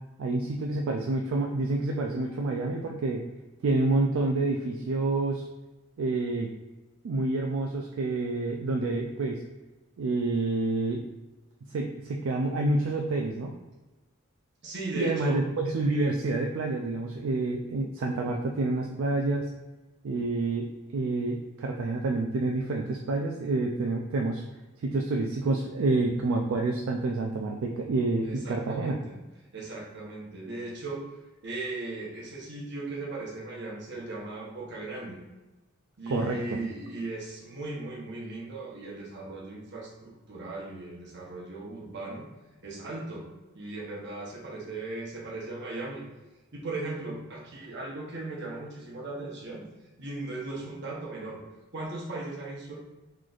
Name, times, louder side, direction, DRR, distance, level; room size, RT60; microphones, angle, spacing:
voice 1, 0.2-3.2 3.6-5.5 6.0-6.5 7.0-9.4 10.0-11.0 11.7-13.5 15.0-19.5 20.0-20.7 20.9-24.4 24.8-29.0 36.1-36.6, right 2 dB, 70° right, 1 dB, 0.3 m, -28 dB
voice 2, 14.6-15.4 28.2-29.1 29.5-31.1 31.4-35.2 36.0-42.3 42.6-43.3 43.5-46.0 46.5-49.6 50.0-51.4 51.7-52.8, right 2 dB, 50° right, -3 dB, 0.9 m, -37 dB
3.9 x 3.1 x 2.4 m, 1.1 s
head